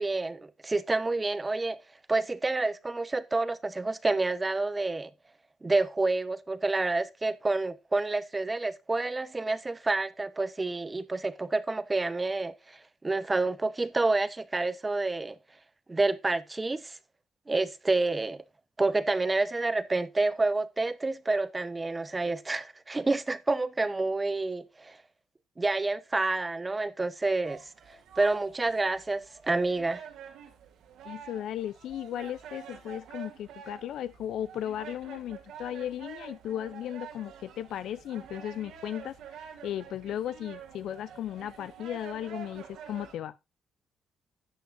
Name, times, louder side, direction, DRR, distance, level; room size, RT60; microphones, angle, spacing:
voice 1, 0.0-1.8 2.1-5.1 5.6-15.4 15.9-17.0 17.5-18.4 18.8-25.0 25.6-27.7 28.2-30.0, right 3 dB, 20° right, 0.8 m, -28 dB
sound 1, 27.5-43.1, right 8 dB, 80° right, 2.9 m, -47 dB
voice 2, 31.1-43.4, left 11 dB, 75° left, 0.5 m, -36 dB
13.0 x 8.4 x 2.6 m
cardioid pair, 90°, 0 cm